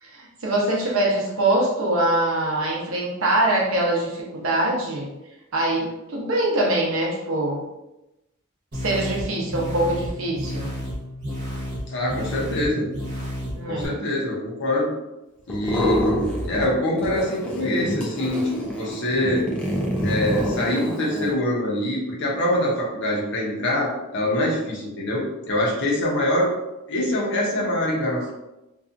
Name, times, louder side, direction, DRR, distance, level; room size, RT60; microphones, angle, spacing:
voice 1, 0.0-5.1 5.5-7.6 8.8-10.7 13.5-13.9, right 1 dB, 80° right, -2 dB, 0.8 m, -23 dB
sound 1, 8.7-13.9, equal, 55° right, 1.0 m, -31 dB
voice 2, 11.9-12.9 13.7-14.9 15.5-19.5 20.0-26.5 26.9-28.3, left 1 dB, 60° left, -3 dB, 0.8 m, -24 dB
sound 2, 15.5-16.7 17.0-21.3, equal, 5° left, 0.4 m, -27 dB
2.7 x 2.4 x 2.4 m, 0.96 s
head